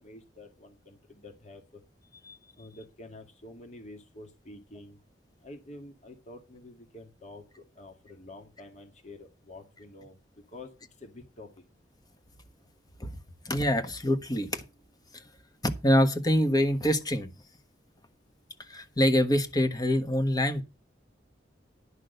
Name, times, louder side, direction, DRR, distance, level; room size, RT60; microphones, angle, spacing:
voice 1, 0.0-1.8 2.6-5.0 5.4-10.2 10.5-10.7 11.0-11.6, left 2 dB, 40° left, 1.9 m, -48 dB
voice 2, 13.4-14.6 15.1-15.2 15.6-17.3 18.7-20.6, equal, 20° left, 1.4 m, -25 dB
11.0 x 6.3 x 6.6 m
head